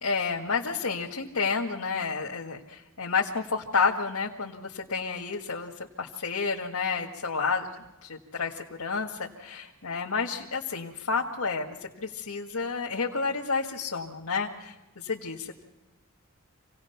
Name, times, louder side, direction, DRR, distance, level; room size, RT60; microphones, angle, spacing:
voice 1, 0.0-5.7 6.0-7.7 8.1-15.6, left 5 dB, 85° left, -1 dB, 1.8 m, -30 dB
27.0 x 18.5 x 5.8 m, 1.1 s
head